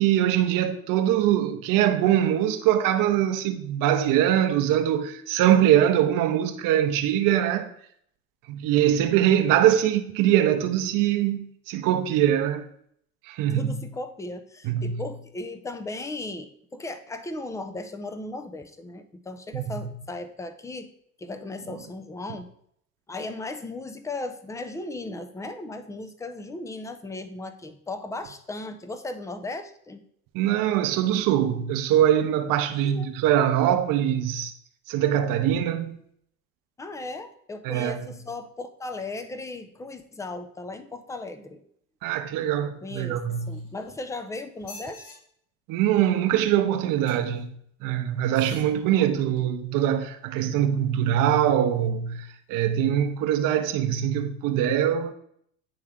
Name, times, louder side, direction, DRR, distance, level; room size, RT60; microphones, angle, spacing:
voice 1, 0.0-7.7 8.5-12.7 13.3-13.7 14.6-15.0 19.5-19.8 30.3-34.5 34.9-36.0 37.6-38.0 42.0-43.7 45.7-47.5 47.8-55.1, right 11 dB, 50° right, 0.7 m, -23 dB
voice 2, 13.5-20.9 21.2-22.5 23.1-30.1 32.8-33.1 36.8-41.6 42.8-43.2 43.5-45.2 48.4-49.3 50.4-50.6, left 2 dB, 10° left, 0.4 m, -37 dB
sound 1, 43.4-44.1 44.6-45.2 47.0-47.4 48.2-48.7 49.4-49.5, left 2 dB, 70° left, 2.1 m, -47 dB
8.6 x 3.3 x 3.6 m
hypercardioid pair, 85°, 43 cm